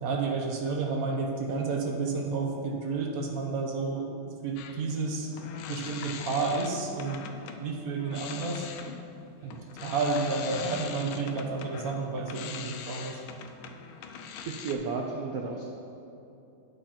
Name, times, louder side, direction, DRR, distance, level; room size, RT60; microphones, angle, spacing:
voice 1, 0.0-5.3 5.7-7.2 7.6-8.7 9.4-13.2, right 4 dB, 50° right, 1 dB, 1.1 m, -31 dB
sound 1, 4.6-7.6 8.0-14.8, left 7 dB, 75° left, 1.3 m, -42 dB
voice 2, 14.1-15.6, right 4 dB, 85° right, 1 dB, 0.8 m, -34 dB
8.9 x 5.1 x 5.7 m, 2.9 s
omnidirectional pair, 2.4 m